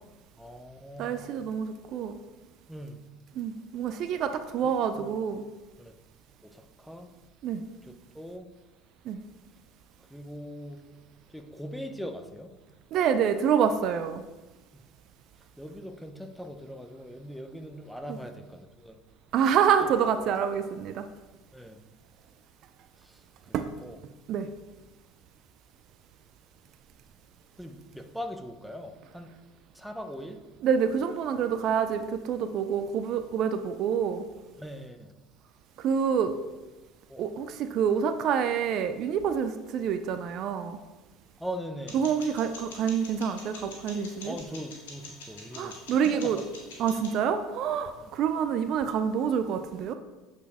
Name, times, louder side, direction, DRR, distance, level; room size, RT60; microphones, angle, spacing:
voice 1, 0.3-1.2 2.7-3.1 4.6-5.1 5.8-5.9 6.4-7.1 7.8-8.5 10.1-10.9 11.3-12.6 14.7-14.8 15.4-19.0 19.8-19.9 21.5-21.8 23.0-24.0 27.6-29.3 29.7-30.4 34.6-35.1 37.1-37.2 41.4-42.0 44.2-46.4 48.0-48.1, equal, ahead, 6 dB, 0.8 m, -41 dB
voice 2, 1.0-2.2 3.4-5.4 7.4-7.6 9.1-9.2 12.9-14.2 18.1-18.2 19.3-21.0 23.5-23.7 24.3-24.5 30.6-34.2 35.8-36.3 37.2-40.8 41.9-44.4 45.5-46.4 46.8-49.9, right 7 dB, 55° right, 9 dB, 0.4 m, -27 dB
sound 1, 41.9-47.2, left 3 dB, 85° left, 1.6 m, -46 dB
8.2 x 4.3 x 3.5 m, 1.1 s
hypercardioid pair, 80°, 0 cm